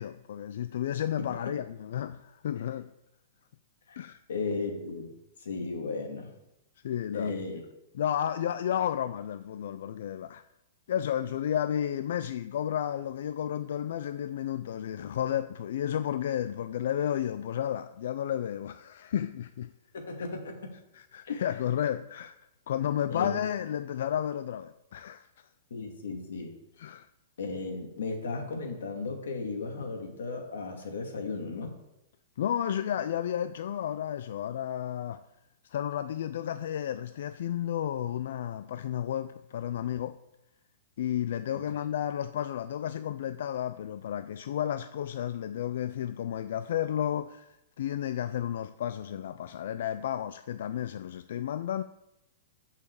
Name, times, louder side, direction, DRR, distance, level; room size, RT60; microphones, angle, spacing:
voice 1, 0.0-2.9 4.0-4.2 6.8-7.3 7.9-10.4 10.9-19.7 20.9-22.4 22.7-25.3 26.8-27.1 32.4-35.2 35.7-40.2 41.0-51.8, left 10 dB, 55° left, 0.3 m, -32 dB
voice 2, 3.9-5.2 5.4-6.3 7.1-7.6 19.9-20.6 21.3-21.4 23.1-23.3 25.7-26.5 27.4-31.8, left 4 dB, 85° left, 2.4 m, -35 dB
13.5 x 5.7 x 4.8 m
hypercardioid pair, 175°, 0 cm